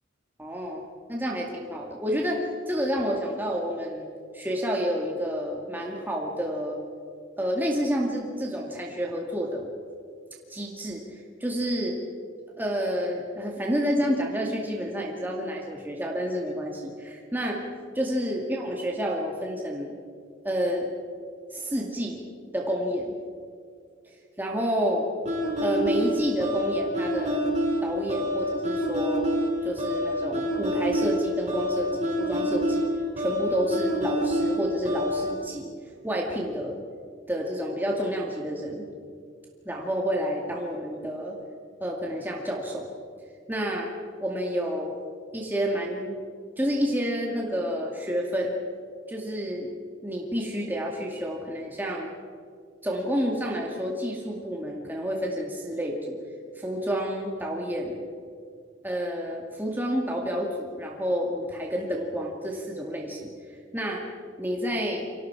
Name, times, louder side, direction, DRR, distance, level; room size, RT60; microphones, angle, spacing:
voice 1, 0.4-0.8 1.1-4.1 4.3-6.8 7.4-9.7 10.5-12.0 12.6-17.6 17.9-19.9 20.4-20.9 21.5-22.2 22.5-23.1 24.0-25.1 25.6-27.4 27.8-29.3 29.6-32.9 33.2-35.7 36.0-36.8 37.3-38.8 39.7-41.3 41.8-42.9 43.5-43.9 44.2-45.0 45.3-46.2 46.6-48.6 49.1-49.7 50.0-52.1 52.8-56.2 56.6-58.0 58.8-63.3 63.7-64.0 64.4-65.0, equal, 10° right, -1 dB, 2.2 m, -29 dB
sound 1, 25.3-35.3, equal, 35° right, 5.3 m, -27 dB
29.0 x 25.0 x 4.8 m, 2.2 s
head